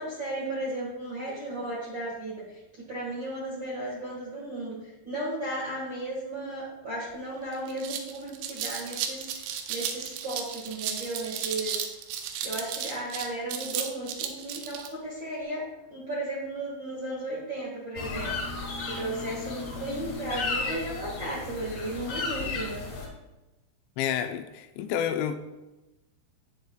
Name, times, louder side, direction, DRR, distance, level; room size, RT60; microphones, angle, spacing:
voice 1, 0.0-11.8 12.4-15.6 15.9-22.8, right 1 dB, 70° right, -6 dB, 1.1 m, -35 dB
sound 1, 7.1-7.2 7.5-14.9, right 9 dB, 85° right, 3.1 m, -34 dB
sound 2, 18.0-23.1, left 3 dB, 55° left, 2.5 m, -34 dB
voice 2, 24.0-25.4, left 9 dB, 85° left, 7 dB, 2.8 m, -29 dB
11.0 x 8.0 x 2.3 m, 1.0 s
omnidirectional pair, 5.2 m